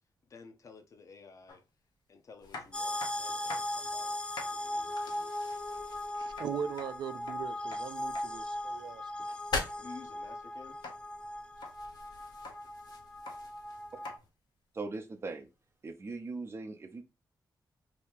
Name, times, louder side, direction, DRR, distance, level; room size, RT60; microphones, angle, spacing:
voice 1, 0.3-1.6 2.1-5.3 9.8-10.8 12.1-12.2, left 4 dB, 45° left, 0.7 m, -53 dB
sound 1, 1.5-1.6 2.5-3.9 4.1-4.6 6.3-8.3 10.8-11.0 11.4-11.7 12.2-12.6 13.1-13.4 14.0-14.2 15.4-15.5, left 3 dB, 85° left, 0.9 m, -45 dB
sound 2, 2.4-14.3, left 3 dB, 70° left, 1.2 m, -46 dB
sound 3, 2.7-14.2, left 1 dB, 15° left, 0.3 m, -38 dB
voice 2, 6.1-9.3, right 8 dB, 90° right, 0.4 m, -40 dB
voice 3, 14.7-15.5 15.8-17.0, right 3 dB, 35° right, 0.7 m, -40 dB
2.9 x 2.7 x 3.5 m
wide cardioid pair, 120°, 7 cm